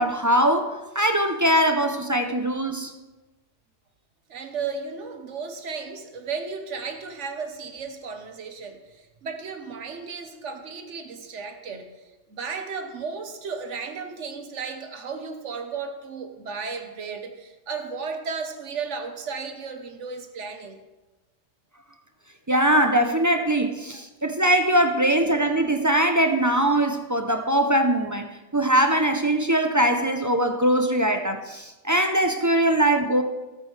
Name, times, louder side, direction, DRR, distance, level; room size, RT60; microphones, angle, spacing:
voice 1, 0.0-2.9 22.5-33.2, right 1 dB, 25° right, 5 dB, 0.5 m, -21 dB
voice 2, 4.3-12.0 12.3-20.8, right 5 dB, 80° right, 6 dB, 1.4 m, -34 dB
16.0 x 8.5 x 3.3 m, 1.1 s
omnidirectional pair, 1.2 m